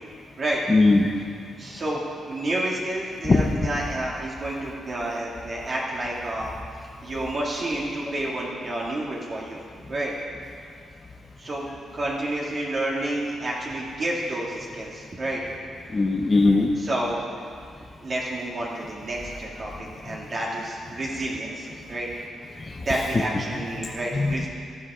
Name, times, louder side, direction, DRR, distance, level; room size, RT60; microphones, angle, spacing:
voice 1, 0.7-1.1 3.2-3.4 15.9-16.7 22.6-23.2 23.5-23.6 24.1-24.5, left 3 dB, 25° left, 0 dB, 0.9 m, -20 dB
voice 2, 1.6-6.5 7.0-10.1 11.4-11.7 11.9-15.4 16.8-17.3 18.0-22.1 22.9-24.5, right 1 dB, 35° right, -5 dB, 2.3 m, -29 dB
19.0 x 13.0 x 5.0 m, 2.2 s
cardioid pair, 130°, 0 cm